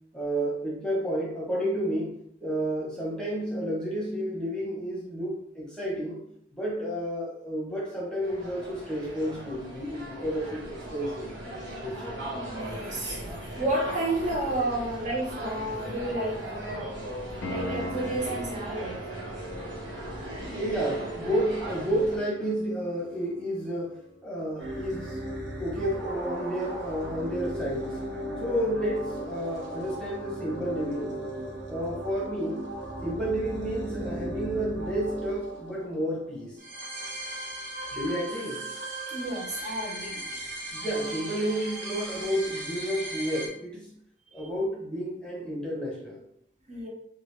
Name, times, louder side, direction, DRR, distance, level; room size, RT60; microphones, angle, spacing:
voice 1, 0.1-6.2 6.5-11.3 11.8-12.2 14.7-14.8 20.5-23.9 24.2-25.2 25.6-28.0 28.4-31.1 31.7-32.7 33.0-36.6 37.9-38.6 40.1-40.2 40.7-43.9 44.3-46.2, equal, 5° left, -5 dB, 0.9 m, -31 dB
sound 1, 8.2-22.2, right 1 dB, 85° right, 1.2 m, -38 dB
voice 2, 12.5-16.4 17.5-19.0 39.1-40.3 46.7-46.9, right 1 dB, 40° right, -3 dB, 0.7 m, -31 dB
Piano, 17.4-28.1 31.4-31.5, left 1 dB, 70° left, 0.5 m, -43 dB
sound 2, 24.6-43.5, right 1 dB, 65° right, 0.9 m, -37 dB
3.3 x 2.4 x 3.2 m, 0.73 s
head